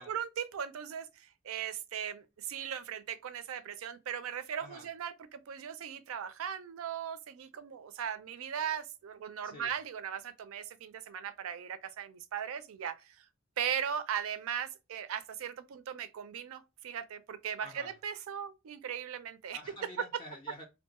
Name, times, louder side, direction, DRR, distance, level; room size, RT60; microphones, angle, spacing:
voice 1, 0.0-13.2 13.6-19.6, right 8 dB, 70° right, 0.4 m, -38 dB
voice 2, 17.6-17.9 19.5-20.6, equal, 25° left, 0.4 m, -48 dB
2.6 x 2.2 x 2.8 m
head